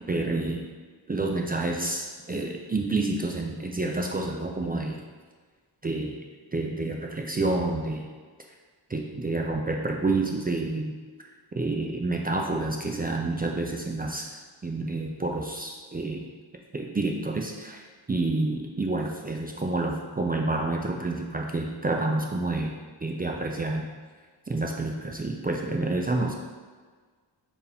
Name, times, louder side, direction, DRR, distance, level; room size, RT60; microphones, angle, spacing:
voice 1, 0.1-0.6 1.1-5.0 5.8-6.1 6.5-8.1 8.9-10.9 11.5-14.4 14.6-16.3 16.7-22.7 23.0-23.9 24.5-26.3, right 2 dB, 25° right, 1 dB, 0.3 m, -29 dB
4.5 x 2.8 x 3.3 m, 1.5 s
wide cardioid pair, 80°, 45 cm